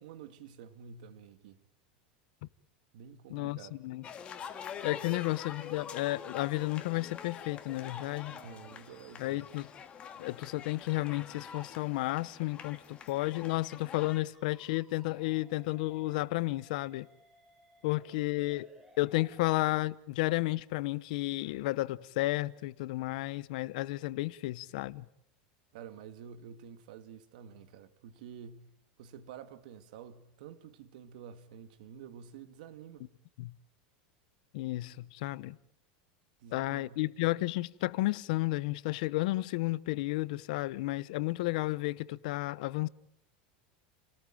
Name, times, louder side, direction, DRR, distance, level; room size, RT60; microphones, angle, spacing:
voice 1, 0.0-1.6 2.9-3.8 5.1-5.3 8.3-9.5 18.2-18.3 25.7-33.1 36.4-37.2, right 7 dB, 70° right, 2.4 m, -49 dB
voice 2, 3.3-4.0 4.8-8.4 9.2-9.7 10.2-17.1 17.8-18.7 19.0-25.0 33.4-33.5 34.5-35.6 36.5-42.9, left 19 dB, 65° left, 1.0 m, -32 dB
sound 1, 4.0-14.2, left 7 dB, 25° left, 2.1 m, -46 dB
sound 2, 14.3-19.6, equal, 5° right, 3.3 m, -61 dB
30.0 x 19.0 x 9.1 m
supercardioid pair, 165°, 5 cm